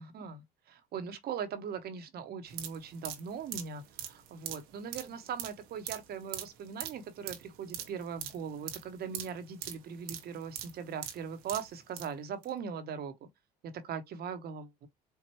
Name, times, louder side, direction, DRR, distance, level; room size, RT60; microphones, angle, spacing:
voice 1, 0.0-13.3 13.6-14.9, right 7 dB, 55° right, 1.1 m, -40 dB
sound 1, 2.5-12.1 12.4-12.5, right 11 dB, 75° right, 1.0 m, -42 dB
4.7 x 2.5 x 2.9 m
hypercardioid pair, 65°, 19 cm